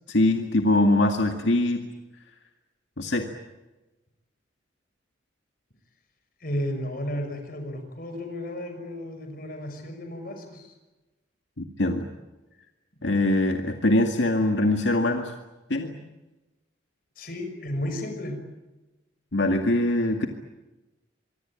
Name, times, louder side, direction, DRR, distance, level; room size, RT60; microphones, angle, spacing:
voice 1, 0.1-1.8 3.0-3.3 11.6-12.1 13.0-15.3 15.7-16.0 19.3-20.3, left 1 dB, 85° left, 4 dB, 2.1 m, -22 dB
voice 2, 6.4-10.7 17.2-18.4, left 1 dB, 50° left, 6 dB, 6.1 m, -33 dB
25.5 x 23.5 x 9.0 m, 1.1 s
head